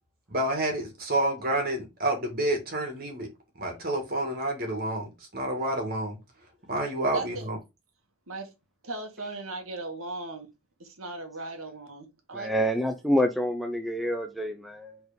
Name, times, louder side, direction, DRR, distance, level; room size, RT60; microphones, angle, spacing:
voice 1, 0.3-3.3 3.6-6.2 6.7-7.6, right 1 dB, 45° right, 2.2 m, -29 dB
voice 2, 7.1-7.5 8.3-8.5 8.8-10.5 10.8-12.7, right 2 dB, 80° right, 1.7 m, -37 dB
voice 3, 12.3-15.0, equal, ahead, 0.6 m, -27 dB
5.0 x 4.0 x 5.1 m
head